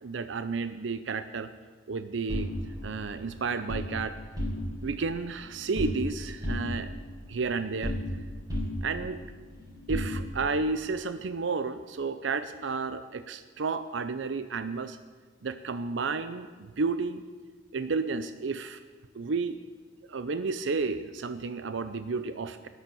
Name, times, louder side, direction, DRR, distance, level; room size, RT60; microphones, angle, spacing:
voice 1, 0.0-1.5 1.9-2.5 2.8-4.1 4.8-6.9 7.3-7.9 8.8-9.2 9.9-15.0 15.4-17.2 17.7-18.8 19.1-19.6 20.1-22.7, right 4 dB, 70° right, 12 dB, 0.6 m, -32 dB
sound 1, 2.3-3.9 4.3-4.9 5.2-6.1 6.4-8.2 8.5-10.6, left 1 dB, 20° right, 4.5 m, -34 dB
13.0 x 10.0 x 7.1 m, 1.4 s
head